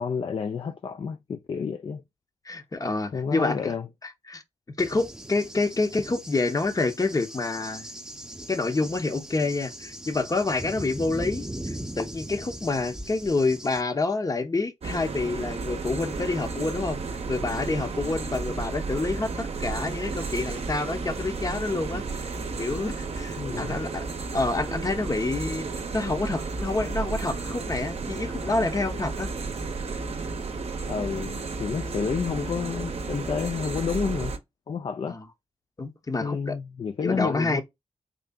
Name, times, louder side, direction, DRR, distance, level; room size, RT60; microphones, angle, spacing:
voice 1, 0.0-2.0 3.1-3.9 23.4-23.8 30.9-34.3 34.7-35.2 36.2-37.6, left 6 dB, 45° left, 0.3 m, -30 dB
voice 2, 2.5-3.7 4.3-4.4 4.8-7.9 8.5-17.0 17.3-22.3 22.6-24.0 24.3-25.7 25.9-29.3 35.1-35.3 35.8-36.6 37.0-37.6, left 3 dB, 30° left, 0.7 m, -28 dB
Cricket / Thunder, 4.8-13.8, right 1 dB, 5° right, 0.7 m, -39 dB
sound 1, 14.8-34.4, right 4 dB, 55° right, 0.7 m, -33 dB
3.8 x 3.3 x 2.2 m
cardioid pair, 80°, 12 cm